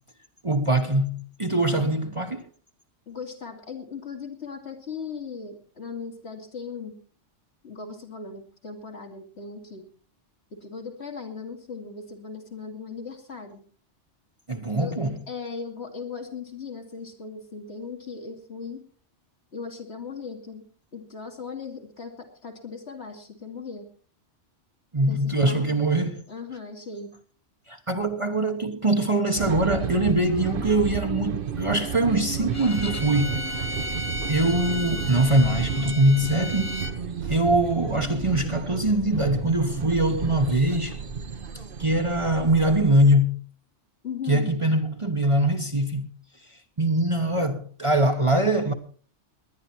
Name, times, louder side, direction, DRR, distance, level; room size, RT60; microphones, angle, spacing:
voice 1, 0.4-2.4 14.5-15.2 24.9-26.2 27.7-36.8 37.2-41.0 41.8-43.4 44.3-46.1 46.8-48.7, right 1 dB, 30° right, 1.0 m, -23 dB
voice 2, 3.1-6.9 7.6-9.9 10.5-13.6 14.8-15.0 15.3-18.8 19.5-20.6 20.9-23.9 25.0-25.8 26.3-27.1 44.0-44.5, left 5 dB, 60° left, 2.7 m, -38 dB
sound 1, 29.3-43.1, right 6 dB, 50° right, 1.0 m, -32 dB
Bowed string instrument, 32.5-37.0, left 1 dB, 20° left, 0.6 m, -34 dB
19.5 x 11.0 x 4.4 m
omnidirectional pair, 1.2 m